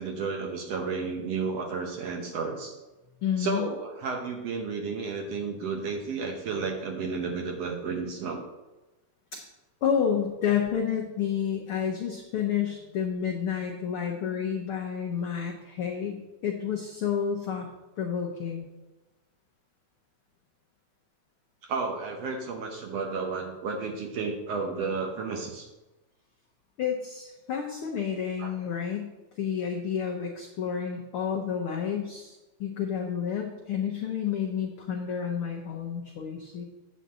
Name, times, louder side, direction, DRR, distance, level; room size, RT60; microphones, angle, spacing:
voice 1, 0.0-2.8 3.4-8.4 21.6-25.7 28.4-28.5, right 4 dB, 65° right, 2 dB, 1.8 m, -32 dB
voice 2, 3.2-3.7 9.3-9.4 9.8-17.7 18.0-18.7 26.8-29.1 29.4-32.3 32.6-36.7, left 8 dB, 80° left, 1 dB, 1.2 m, -30 dB
9.7 x 4.1 x 7.4 m, 1.1 s
omnidirectional pair, 3.6 m